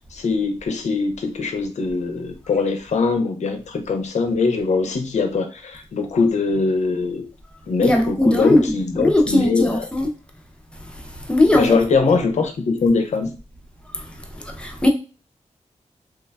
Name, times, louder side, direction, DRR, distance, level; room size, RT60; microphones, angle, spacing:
voice 1, 0.1-7.2 7.7-9.8 11.5-13.3, left 4 dB, 65° left, 0.5 m, -22 dB
voice 2, 7.8-10.1 10.8-11.8 13.9-14.9, left 1 dB, 10° left, 0.4 m, -19 dB
3.1 x 2.1 x 2.2 m
wide cardioid pair, 165°, 13 cm